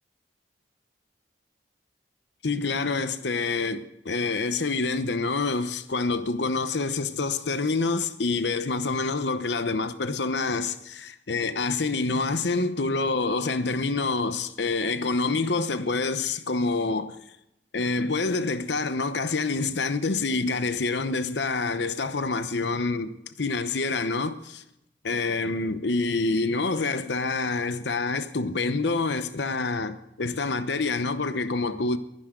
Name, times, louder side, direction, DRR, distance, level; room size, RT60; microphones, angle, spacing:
voice 1, 2.4-17.2 17.7-24.6 25.0-32.0, left 3 dB, 70° left, 0.9 m, -27 dB
22.5 x 10.5 x 3.8 m
head